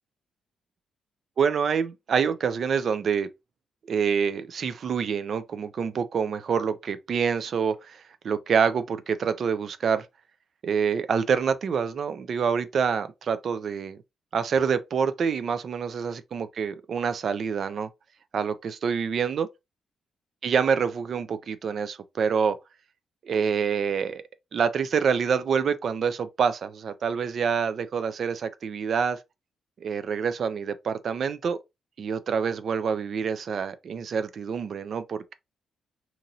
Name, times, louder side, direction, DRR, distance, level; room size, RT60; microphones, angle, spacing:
voice 1, 1.4-3.3 3.9-10.1 10.6-14.0 14.3-17.9 18.3-19.5 20.4-22.6 23.2-24.2 24.5-29.2 29.8-31.6 32.0-35.3, right 6 dB, 40° right, 0.3 m, -26 dB
2.9 x 2.6 x 3.8 m
cardioid pair, 180°, 0 cm